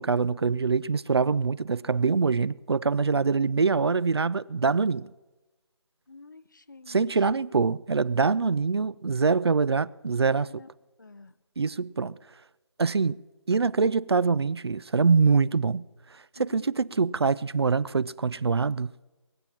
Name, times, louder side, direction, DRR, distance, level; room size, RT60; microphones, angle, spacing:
voice 1, 0.0-5.1 6.9-10.5 11.6-12.1 12.8-13.2 13.5-15.8 16.4-18.9, right 4 dB, 60° right, 0.4 m, -24 dB
voice 2, 6.1-7.4 10.3-10.7 11.0-11.4 16.3-17.0, left 3 dB, 40° left, 0.6 m, -49 dB
22.5 x 7.4 x 7.2 m
figure-of-eight pair, 175°, 15 cm